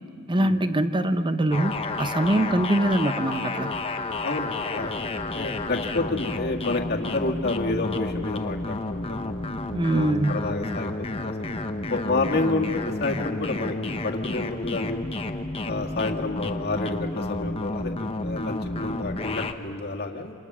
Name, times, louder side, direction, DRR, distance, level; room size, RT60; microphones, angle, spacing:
voice 1, 0.3-3.7 9.7-10.5, right 1 dB, 20° right, 10 dB, 0.8 m, -23 dB
sound 1, 1.5-19.5, left 2 dB, 25° left, 0.9 m, -31 dB
voice 2, 4.2-4.9 5.3-9.4 9.9-11.6 11.9-15.0 15.7-20.3, left 3 dB, 45° left, 1 dB, 1.9 m, -29 dB
28.0 x 26.5 x 6.2 m, 2.7 s
head